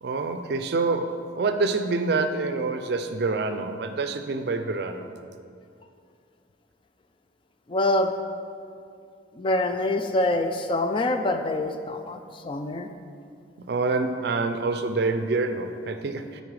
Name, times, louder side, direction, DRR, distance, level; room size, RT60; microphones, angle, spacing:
voice 1, 0.0-5.1 13.7-16.4, right 3 dB, 60° right, 8 dB, 0.4 m, -26 dB
voice 2, 7.7-8.1 9.4-12.9, left 2 dB, 25° left, 6 dB, 0.3 m, -25 dB
8.6 x 4.1 x 4.7 m, 2.3 s
head